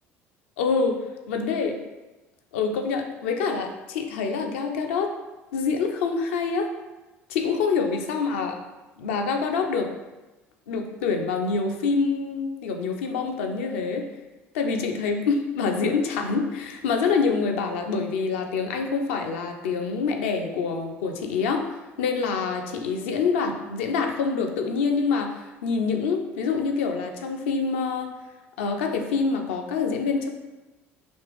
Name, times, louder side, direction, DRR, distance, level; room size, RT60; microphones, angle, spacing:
voice 1, 0.6-1.0 1.3-1.7 2.5-5.1 5.5-6.7 7.3-8.6 9.0-9.9 10.7-14.1 14.5-21.7 22.0-28.1 28.6-30.3, left 5 dB, 65° left, 4 dB, 0.5 m, -26 dB
5.2 x 3.0 x 3.3 m, 1.1 s
figure-of-eight pair, 60°, 7 cm